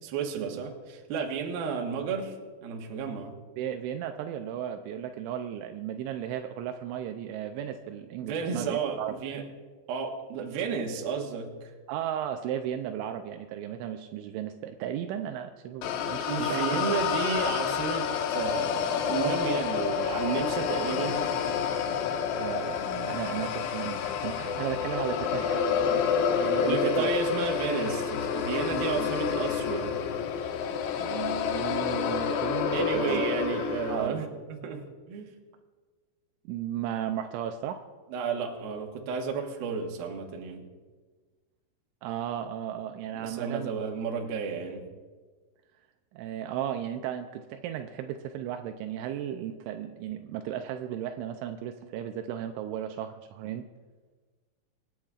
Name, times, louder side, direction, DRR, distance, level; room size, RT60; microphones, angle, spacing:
voice 1, 0.0-2.4 2.6-3.3 8.2-9.4 9.9-11.7 16.2-21.2 26.6-30.0 32.7-34.8 35.1-35.3 38.1-40.6 43.1-44.8, right 6 dB, 65° right, 1 dB, 2.8 m, -32 dB
voice 2, 3.6-9.2 11.9-17.0 22.4-27.1 28.7-29.1 31.0-33.2 33.9-34.3 36.5-37.8 42.0-43.7 44.2-44.4 46.1-53.6, right 10 dB, 85° right, 6 dB, 2.9 m, -35 dB
sound 1, 15.8-34.1, left 7 dB, 80° left, 3.0 m, -29 dB
26.5 x 9.2 x 2.4 m, 1.4 s
omnidirectional pair, 5.3 m